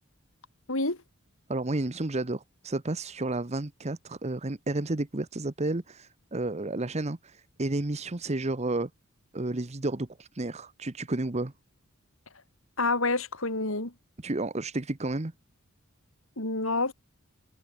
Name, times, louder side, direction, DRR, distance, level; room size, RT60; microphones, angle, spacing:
voice 1, 1.5-8.9 9.3-11.5 14.2-15.3, right 2 dB, 30° right, 1.0 m, -31 dB
voice 2, 12.8-13.9 16.4-16.9, left 3 dB, 70° left, 4.6 m, -28 dB
head